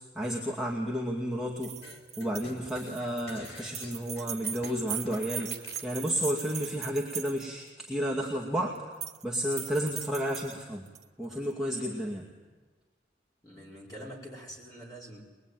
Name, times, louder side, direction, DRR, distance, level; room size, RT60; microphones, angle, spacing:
voice 1, 0.1-1.7 2.2-8.8 9.2-10.9 11.2-12.2, equal, ahead, -5 dB, 2.3 m, -32 dB
sound 1, 1.6-7.7 8.8-9.2 9.5-11.0, right 10 dB, 35° right, 1.1 m, -39 dB
sound 2, 1.8-5.9, left 2 dB, 65° left, 3.4 m, -48 dB
voice 2, 13.4-15.2, equal, 20° left, -3 dB, 4.8 m, -45 dB
22.5 x 22.0 x 9.5 m, 1.3 s
head